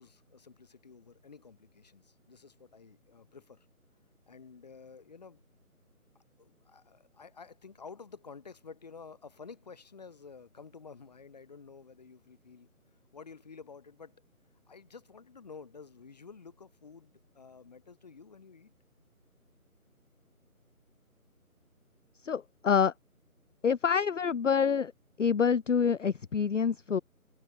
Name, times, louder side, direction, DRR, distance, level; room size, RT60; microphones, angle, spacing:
voice 1, 0.0-3.7 4.3-5.4 6.4-12.7 13.1-14.1 14.7-18.7, left 5 dB, 30° left, 1.9 m, -51 dB
voice 2, 22.2-22.9 23.6-24.9 25.2-27.0, left 6 dB, 60° left, 0.5 m, -26 dB
figure-of-eight pair, 165°, 44 cm